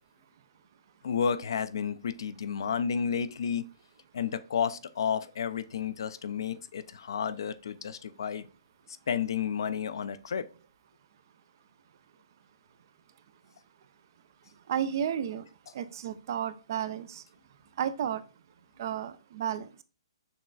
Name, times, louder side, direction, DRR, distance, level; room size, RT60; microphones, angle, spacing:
voice 1, 1.0-3.7 4.1-8.5 8.9-10.5, left 7 dB, 60° left, 0.4 m, -31 dB
voice 2, 14.7-15.5 15.7-17.2 17.8-18.2 18.8-19.8, right 9 dB, 45° right, 0.4 m, -32 dB
6.4 x 3.0 x 2.3 m
figure-of-eight pair, 130°, 3 cm